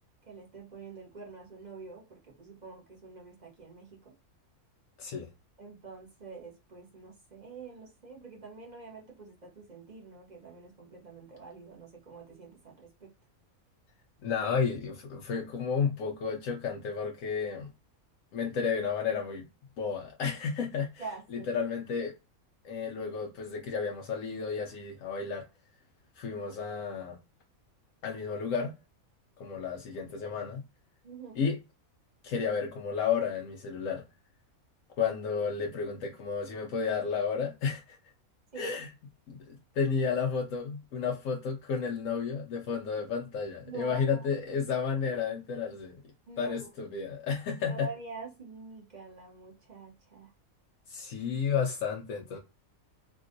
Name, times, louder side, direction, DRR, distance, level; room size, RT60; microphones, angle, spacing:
voice 1, 0.2-4.1 5.6-13.1 21.0-21.5 31.0-31.4 38.5-38.7 43.6-44.3 46.3-46.7 47.7-50.3, right 4 dB, 30° right, 1.1 m, -46 dB
voice 2, 14.2-17.7 18.3-19.4 19.8-21.0 21.3-22.1 22.6-25.4 26.2-27.2 28.0-28.7 29.4-30.6 31.3-31.6 32.2-34.0 35.0-38.0 38.6-38.9 39.3-46.0 46.4-47.9 50.9-52.4, left 6 dB, 70° left, 1.0 m, -32 dB
3.6 x 2.4 x 2.5 m
omnidirectional pair, 1.5 m